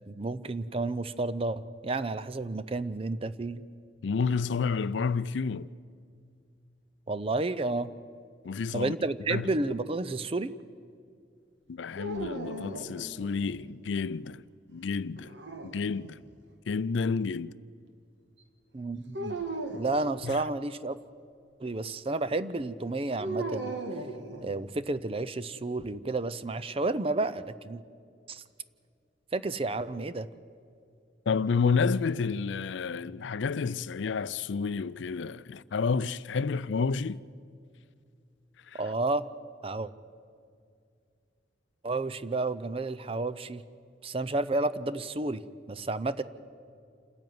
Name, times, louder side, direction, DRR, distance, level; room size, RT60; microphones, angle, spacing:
voice 1, 0.1-3.6 7.1-7.9 8.7-10.5 18.7-19.4 19.7-21.0 21.6-23.8 24.4-27.8 28.3-28.4 29.3-30.3 38.8-39.3 39.6-39.9 41.8-43.6 44.0-46.2, right 2 dB, 30° right, 0.6 m, -31 dB
voice 2, 4.0-5.7 8.4-8.9 9.3-9.5 11.7-14.4 14.7-15.3 15.6-16.2 16.7-17.5 20.2-20.4 31.3-37.2 38.7-38.8, left 5 dB, 80° left, 0.4 m, -30 dB
sound 1, 12.0-13.5 15.2-16.3 19.1-19.9 23.2-24.8, right 2 dB, 70° right, 1.7 m, -37 dB
28.0 x 10.5 x 9.4 m
head